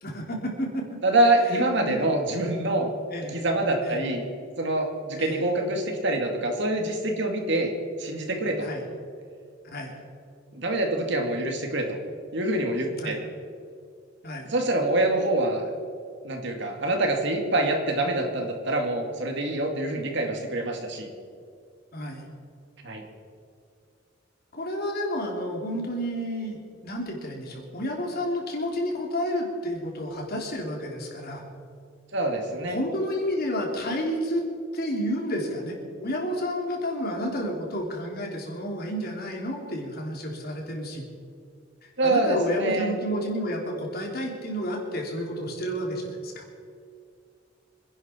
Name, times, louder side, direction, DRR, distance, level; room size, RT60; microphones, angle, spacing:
voice 1, 0.0-1.0 1.5-2.0 3.1-3.4 3.8-4.0 5.1-5.5 8.6-8.9 9.6-9.9 13.0-13.2 14.2-14.5 21.9-22.3 24.5-31.4 32.7-34.4 34.7-41.0 42.0-46.4, equal, 55° left, 0 dB, 3.3 m, -31 dB
voice 2, 1.0-2.9 3.3-4.3 4.6-7.7 8.0-8.7 10.5-12.0 12.3-13.2 14.4-15.6 16.2-21.1 22.8-23.0 32.1-32.8 42.0-42.9, right 1 dB, 65° right, 3 dB, 2.4 m, -25 dB
26.5 x 11.0 x 4.5 m, 2.3 s
head